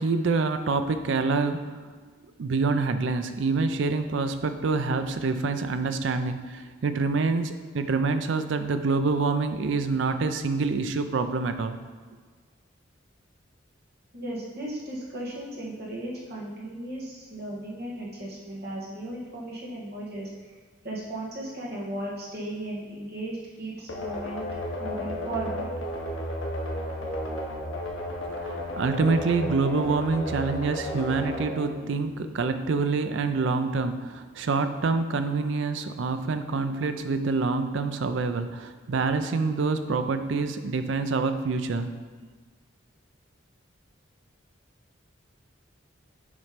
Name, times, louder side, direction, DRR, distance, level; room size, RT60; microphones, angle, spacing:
voice 1, 0.0-1.8 2.4-11.8 28.3-41.9, right 4 dB, 70° right, 9 dB, 0.4 m, -26 dB
voice 2, 14.1-20.5 20.8-24.4 24.8-25.7, right 1 dB, 50° right, -5 dB, 1.6 m, -36 dB
sound 1, 23.9-32.6, left 1 dB, 80° left, 1.0 m, -33 dB
7.1 x 3.2 x 5.0 m, 1.5 s
head